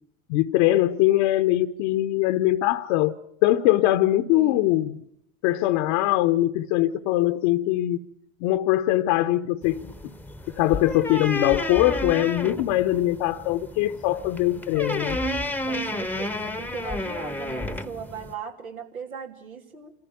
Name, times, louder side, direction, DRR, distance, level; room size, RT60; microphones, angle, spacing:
voice 1, 0.3-3.2 3.4-5.0 5.4-8.0 8.4-9.9 10.6-15.2, left 15 dB, 55° left, 9 dB, 1.0 m, -22 dB
voice 2, 4.3-4.6 15.7-19.9, right 5 dB, 90° right, 3 dB, 3.0 m, -38 dB
sound 1, 9.6-18.3, left 1 dB, 5° left, 1.0 m, -32 dB
27.5 x 14.5 x 9.4 m, 0.76 s
hypercardioid pair, 85°, 40 cm